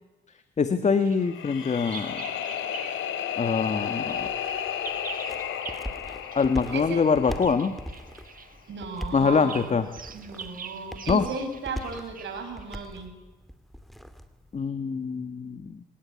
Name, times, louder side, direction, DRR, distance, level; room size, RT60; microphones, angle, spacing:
voice 1, 0.6-2.2 3.4-4.3 6.3-7.7 9.1-9.9 11.1-11.3 14.5-15.8, left 5 dB, 35° left, 9 dB, 1.6 m, -24 dB
Bird vocalization bird call bird song, 0.9-3.1 3.4-12.9, right 6 dB, 45° right, 1.8 m, -45 dB
sound 1, 1.2-8.3, left 9 dB, 80° left, 3.1 m, -33 dB
sound 2, 4.2-14.7, equal, ahead, 2.5 m, -41 dB
voice 2, 6.7-7.0 8.7-9.8 10.1-13.1, right 4 dB, 65° right, 6 dB, 6.3 m, -35 dB
25.5 x 18.0 x 9.7 m, 1.2 s
cardioid pair, 90°, 20 cm